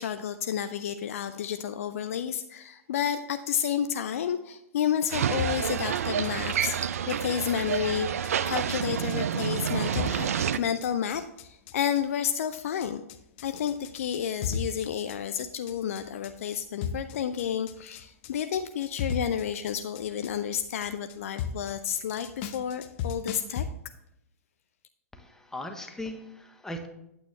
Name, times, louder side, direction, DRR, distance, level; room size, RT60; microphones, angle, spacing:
voice 1, 0.0-6.8 7.1-8.1 8.4-13.0 13.4-23.6, left 9 dB, 70° left, 10 dB, 0.5 m, -31 dB
sound 1, 5.1-10.6, right 8 dB, 75° right, 0.4 m, -29 dB
sound 2, 5.4-23.7, left 6 dB, 45° left, 0.8 m, -37 dB
voice 2, 25.1-26.9, left 1 dB, 5° left, 4 dB, 1.0 m, -39 dB
9.1 x 8.3 x 3.2 m, 0.82 s
hypercardioid pair, 115°, 8 cm